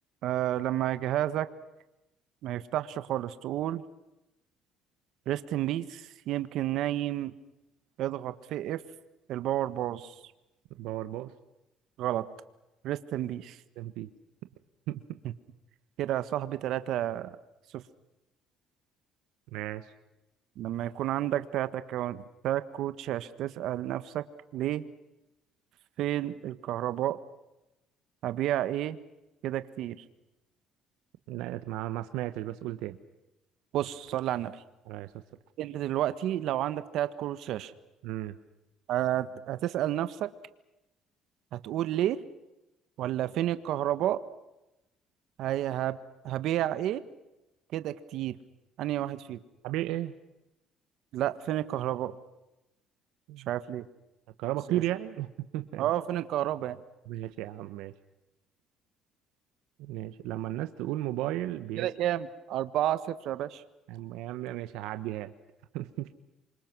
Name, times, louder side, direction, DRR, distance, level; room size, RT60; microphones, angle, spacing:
voice 1, 0.2-1.5 2.4-3.8 5.3-7.3 8.0-8.8 9.3-10.1 12.0-12.3 12.8-13.6 15.2-15.3 16.0-17.4 17.7-17.8 20.6-24.2 24.5-24.8 26.0-27.2 28.2-29.0 29.4-30.0 33.7-34.6 35.6-37.7 38.9-40.3 41.5-42.2 43.0-44.2 45.4-46.0 46.2-47.0 47.7-48.4 48.8-49.4 51.1-52.1 53.5-53.8 54.7-54.8 55.8-56.8 61.8-63.6, right 12 dB, 70° right, 12 dB, 1.4 m, -30 dB
voice 2, 10.8-11.3 13.8-14.1 14.9-15.2 19.5-19.9 31.3-33.0 34.9-35.1 38.0-38.4 49.6-50.1 53.3-53.5 54.4-55.9 57.1-57.9 59.8-61.9 63.9-65.3 65.7-66.1, right 14 dB, 90° right, 10 dB, 1.2 m, -34 dB
27.5 x 25.0 x 6.2 m, 0.94 s
cardioid pair, 120°, 0 cm